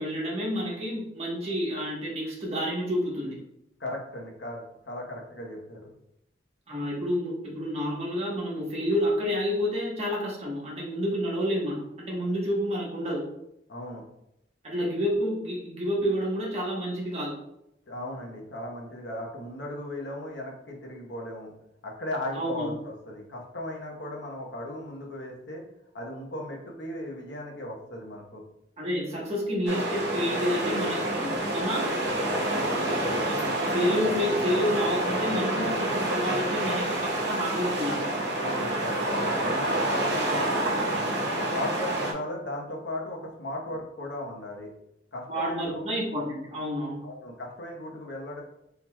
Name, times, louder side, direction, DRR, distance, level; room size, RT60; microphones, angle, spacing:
voice 1, 0.0-3.4 6.7-13.2 14.6-17.4 22.4-22.7 28.8-31.9 33.3-38.1 45.3-47.0, equal, 35° right, -4 dB, 1.1 m, -29 dB
voice 2, 3.8-5.9 13.7-14.0 17.9-21.5 21.8-25.6 25.9-28.4 34.5-34.6 38.4-41.0 41.5-44.7 45.1-45.9 47.0-48.4, left 1 dB, 85° left, 0 dB, 0.9 m, -37 dB
sound 1, 29.7-42.1, right 1 dB, 75° right, 0.8 m, -28 dB
4.4 x 3.8 x 2.2 m, 0.81 s
head